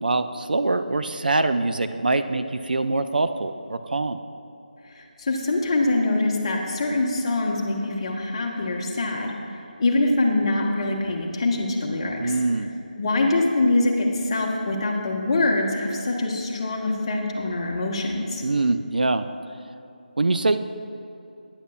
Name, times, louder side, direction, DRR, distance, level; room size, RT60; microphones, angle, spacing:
voice 1, 0.0-4.2 12.2-12.7 18.4-19.3 20.2-20.6, right 2 dB, 65° right, 9 dB, 0.5 m, -23 dB
voice 2, 4.9-9.3 9.8-12.3 13.0-18.4, left 2 dB, 35° left, -1 dB, 1.2 m, -24 dB
14.5 x 9.9 x 2.4 m, 2.7 s
figure-of-eight pair, 160°, 5 cm